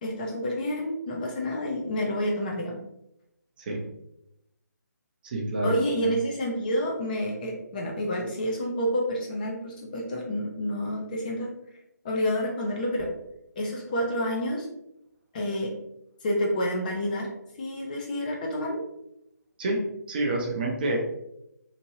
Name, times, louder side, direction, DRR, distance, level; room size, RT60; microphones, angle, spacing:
voice 1, 0.0-2.8 5.6-11.5 12.0-13.1 13.6-14.7 15.3-15.7 16.2-17.3 17.6-18.8, equal, 25° left, -1 dB, 0.5 m, -29 dB
voice 2, 5.2-5.7 6.0-6.1 19.6-21.0, right 2 dB, 30° right, -1 dB, 0.5 m, -28 dB
2.9 x 2.6 x 2.8 m, 0.83 s
figure-of-eight pair, 150°, 10 cm